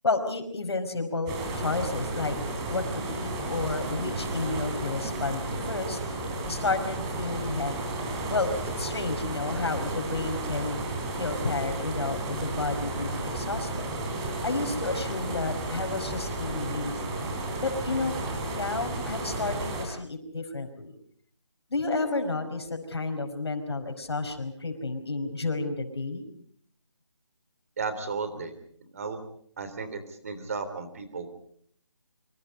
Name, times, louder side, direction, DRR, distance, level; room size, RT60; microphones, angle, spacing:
voice 1, 0.0-2.4 2.7-6.2 6.5-7.9 8.3-8.5 8.8-10.8 11.1-13.9 14.4-17.2 17.6-18.2 18.5-20.9 21.7-26.2, left 3 dB, 60° left, 5 dB, 5.2 m, -31 dB
sound 1, 1.3-19.9, right 2 dB, 10° right, 3.3 m, -33 dB
voice 2, 27.8-28.5 28.9-29.2 29.6-31.3, right 4 dB, 30° right, 10 dB, 3.4 m, -34 dB
28.0 x 25.5 x 5.4 m, 0.63 s
figure-of-eight pair, 170°, 15 cm